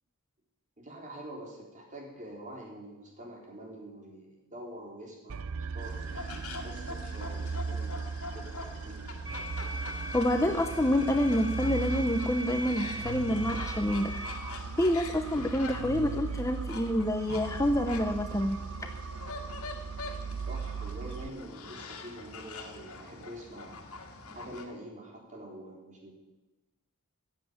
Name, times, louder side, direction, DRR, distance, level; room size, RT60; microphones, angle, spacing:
voice 1, 0.8-8.0 8.3-9.1 20.5-23.8 24.3-26.1, right 1 dB, 35° right, -1 dB, 3.6 m, -46 dB
sound 1, 5.3-21.3, right 5 dB, 70° right, 0.6 m, -38 dB
sound 2, 5.8-24.6, left 3 dB, 85° left, 1.9 m, -45 dB
sound 3, 9.3-14.3, equal, 20° right, 3.1 m, -41 dB
voice 2, 10.1-14.3 14.8-18.6, left 1 dB, 15° left, 6 dB, 0.7 m, -27 dB
14.5 x 7.9 x 8.7 m, 1.1 s
head